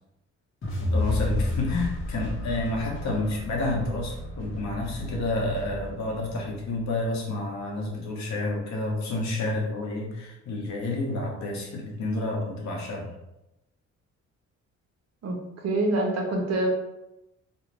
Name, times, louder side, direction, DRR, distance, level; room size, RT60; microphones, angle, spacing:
sound 1, 0.6-6.8, left 2 dB, 45° left, 0.9 m, -32 dB
voice 1, 0.8-13.2, left 2 dB, 65° left, -1 dB, 0.9 m, -29 dB
voice 2, 15.6-16.7, right 2 dB, 60° right, 1 dB, 0.7 m, -25 dB
2.5 x 2.2 x 3.2 m, 0.91 s
cardioid pair, 90°, 30 cm